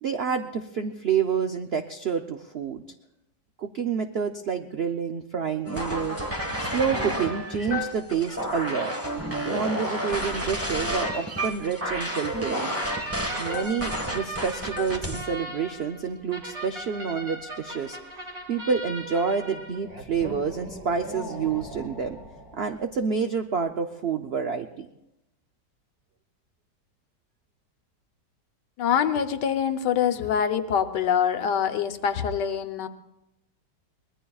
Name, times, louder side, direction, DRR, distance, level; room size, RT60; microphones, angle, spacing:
voice 1, 0.0-2.8 3.6-6.2 6.6-8.9 9.5-12.7 13.4-18.0 18.5-22.2 22.6-24.9, right 6 dB, 75° right, 6 dB, 0.5 m, -28 dB
sound 1, 5.6-15.3, equal, 10° right, 1.2 m, -30 dB
sound 2, 12.7-23.1, right 1 dB, 50° right, 2.9 m, -39 dB
voice 2, 28.8-32.9, left 8 dB, 75° left, 9 dB, 1.4 m, -25 dB
24.0 x 20.0 x 2.3 m, 0.91 s
omnidirectional pair, 1.9 m